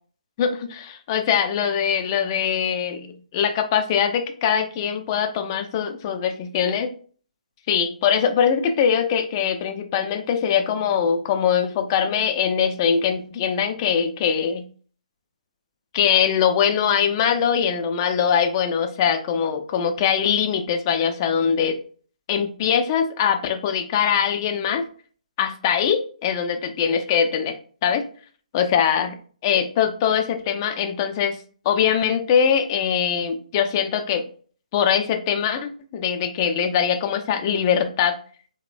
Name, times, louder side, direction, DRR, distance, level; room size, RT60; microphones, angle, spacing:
voice 1, 0.4-6.9 7.7-14.6 15.9-21.8 22.3-24.8 25.4-27.6 27.8-28.1 28.5-29.2 29.4-31.4 31.6-34.2 34.7-38.2, left 8 dB, 30° left, 6 dB, 0.3 m, -22 dB
3.1 x 2.0 x 2.4 m, 0.43 s
figure-of-eight pair, 135°, 4 cm